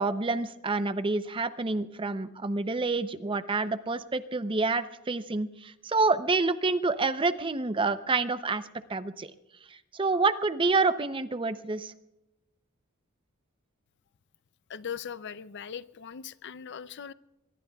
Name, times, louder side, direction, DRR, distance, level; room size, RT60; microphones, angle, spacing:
voice 1, 0.0-8.6 8.9-9.3 9.9-11.9, right 3 dB, 25° right, 0.6 m, -28 dB
voice 2, 14.7-17.1, left 7 dB, 55° left, 0.5 m, -39 dB
23.5 x 22.0 x 2.3 m
head